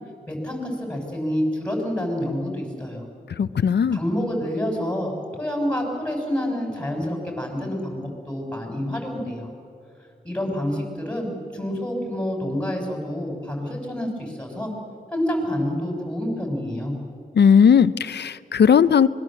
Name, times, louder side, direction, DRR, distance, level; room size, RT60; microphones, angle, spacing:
voice 1, 0.3-3.0 3.9-9.5 10.2-14.7 15.1-16.9, equal, 5° left, 1 dB, 6.7 m, -28 dB
voice 2, 3.4-4.0 17.4-19.1, left 7 dB, 85° left, 15 dB, 0.7 m, -17 dB
25.0 x 21.5 x 7.6 m, 2.3 s
wide cardioid pair, 75°, 17 cm